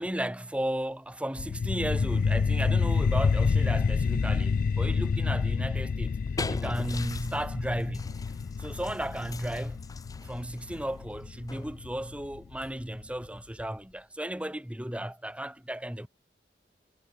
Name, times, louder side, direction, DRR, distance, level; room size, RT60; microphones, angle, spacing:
voice 1, 0.0-6.2 6.5-8.1 8.6-9.8 10.2-16.1, right 1 dB, 5° right, 1.4 m, -34 dB
sound 1, 1.4-12.4, left 5 dB, 55° left, 0.3 m, -28 dB
sound 2, 5.9-14.0, left 3 dB, 20° left, 0.8 m, -43 dB
head